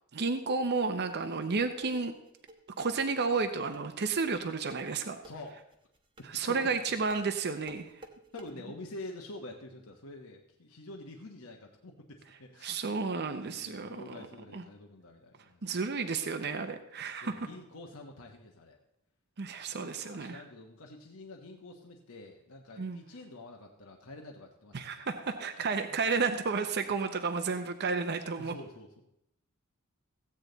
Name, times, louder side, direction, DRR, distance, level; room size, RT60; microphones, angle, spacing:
voice 1, 0.1-2.1 2.8-5.2 6.3-7.9 12.6-14.2 14.5-14.6 15.6-17.4 19.4-20.4 22.8-23.0 24.7-28.5, right 4 dB, 50° right, 7 dB, 0.7 m, -32 dB
sound 1, 1.0-8.5, right 1 dB, 25° right, 1.1 m, -53 dB
voice 2, 5.2-5.6 6.5-6.7 8.3-12.8 13.2-15.8 17.2-18.8 19.7-25.1 28.4-29.0, left 2 dB, 70° left, 1 dB, 1.1 m, -47 dB
15.0 x 8.7 x 3.9 m, 0.81 s
head